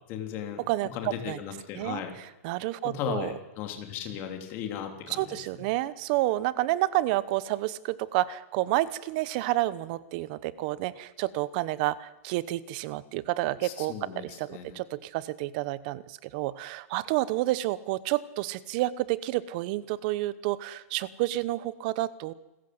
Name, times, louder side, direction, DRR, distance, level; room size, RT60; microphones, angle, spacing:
voice 1, 0.1-0.6 0.9-2.1 2.8-5.4 13.6-14.8, left 8 dB, 30° left, 5 dB, 3.3 m, -36 dB
voice 2, 0.7-1.4 1.7-3.3 5.1-22.3, right 16 dB, 35° right, 18 dB, 0.9 m, -30 dB
27.5 x 15.0 x 7.9 m, 1.0 s
hypercardioid pair, 165°, 8 cm